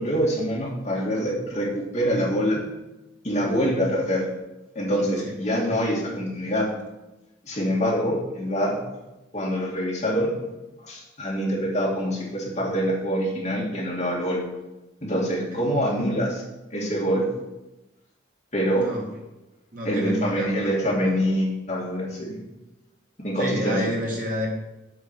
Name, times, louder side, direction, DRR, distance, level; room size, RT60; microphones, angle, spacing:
voice 1, 0.0-2.6 3.2-4.2 4.7-6.7 7.4-8.8 9.3-10.3 10.8-14.4 15.0-16.4 16.7-17.2 18.5-18.8 19.8-22.4 23.2-23.9, equal, 35° left, -5 dB, 2.5 m, -25 dB
voice 2, 18.7-19.1 19.7-21.2 23.4-24.5, equal, 45° right, -2 dB, 1.8 m, -30 dB
8.3 x 5.1 x 6.4 m, 0.99 s
head